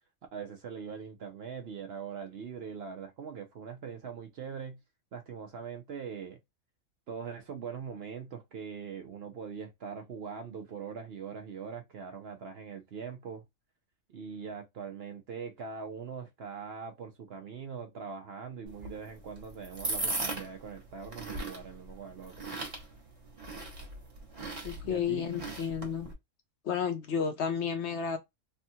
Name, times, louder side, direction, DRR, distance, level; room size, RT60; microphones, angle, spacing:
voice 1, 0.3-4.8 5.1-6.4 7.1-13.4 14.1-22.5 24.8-25.2, right 6 dB, 60° right, 0.7 m, -42 dB
sound 1, 18.7-26.1, right 2 dB, 30° right, 1.0 m, -39 dB
voice 2, 24.6-26.1 26.6-28.2, left 7 dB, 60° left, 0.8 m, -32 dB
3.4 x 2.3 x 2.7 m
omnidirectional pair, 1.4 m